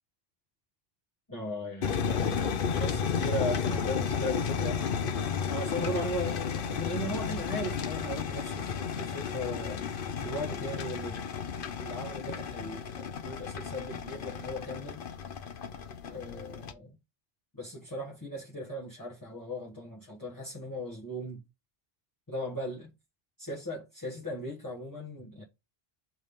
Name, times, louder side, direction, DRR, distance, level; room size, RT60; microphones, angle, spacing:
voice 1, 1.3-4.8 5.5-9.8 10.2-11.2 11.8-15.0 16.1-16.9 17.5-21.4 22.3-22.9 23.4-25.4, left 1 dB, 20° left, 1.2 m, -37 dB
sound 1, 1.8-16.7, left 6 dB, 60° left, 0.8 m, -33 dB
5.1 x 3.6 x 5.4 m
omnidirectional pair, 1.1 m